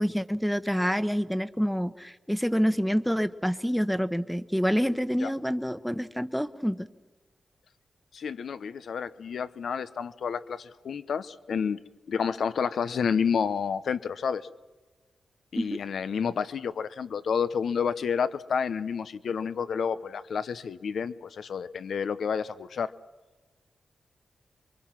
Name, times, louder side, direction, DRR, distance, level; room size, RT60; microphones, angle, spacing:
voice 1, 0.0-6.9 15.5-15.8, equal, ahead, 12 dB, 1.2 m, -27 dB
voice 2, 8.1-11.8 12.1-14.5 15.5-22.9, left 6 dB, 80° left, 13 dB, 1.0 m, -30 dB
27.5 x 23.0 x 6.0 m, 1.2 s
cardioid pair, 55°, 0 cm